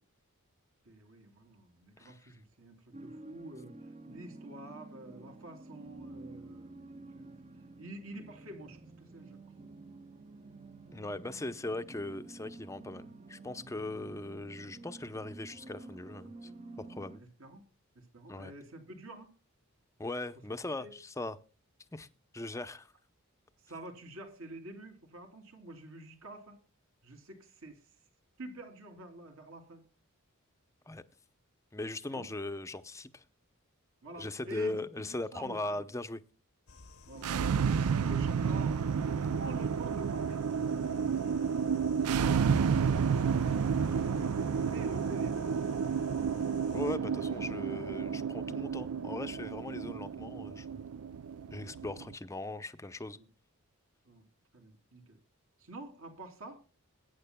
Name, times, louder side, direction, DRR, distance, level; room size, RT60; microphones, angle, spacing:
voice 1, 0.8-7.3 7.8-9.4 17.2-17.6 17.9-19.3 20.8-21.0 23.6-26.6 27.0-27.9 28.4-29.8 32.1-32.3 34.0-35.8 37.1-37.3 37.6-38.8 39.4-40.4 41.2-41.4 41.9-42.4 42.8-43.4 43.8-45.7 53.1-53.3 54.0-54.2 54.5-55.2 55.6-56.6, right 1 dB, 70° right, 3.1 m, -48 dB
voice 2, 2.0-2.3 10.9-16.5 16.8-17.2 18.3-18.5 20.0-21.4 21.9-22.1 22.3-22.9 30.9-31.0 31.7-33.2 34.2-36.2 46.7-50.8 51.5-53.2, left 2 dB, 15° left, 0.6 m, -39 dB
sound 1, 2.9-17.2, right 2 dB, 30° right, 0.6 m, -50 dB
sound 2, 36.7-47.0, left 3 dB, 70° left, 0.9 m, -54 dB
sound 3, 37.1-52.1, right 6 dB, 85° right, 0.4 m, -31 dB
22.0 x 9.5 x 2.2 m
head